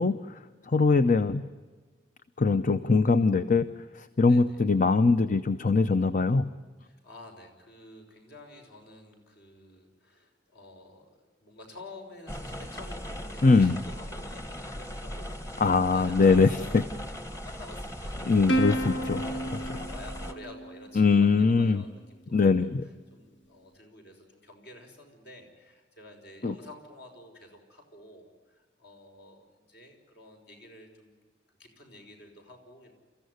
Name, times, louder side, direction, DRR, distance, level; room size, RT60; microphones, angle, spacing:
voice 1, 0.0-1.4 2.4-3.7 3.9-6.5 13.4-13.8 15.6-16.8 18.3-19.2 21.0-21.8 22.3-22.9 26.4-26.5, left 4 dB, 45° left, 12 dB, 0.7 m, -22 dB
voice 2, 4.2-4.7 6.8-22.7 23.1-31.2 31.6-32.9, left 2 dB, 60° left, 3 dB, 5.8 m, -50 dB
sound 1, 12.3-20.3, equal, 15° left, 1.5 m, -38 dB
Plucked string instrument, 18.5-21.2, right 1 dB, 85° left, 1.9 m, -31 dB
29.5 x 15.0 x 9.5 m, 1.4 s
head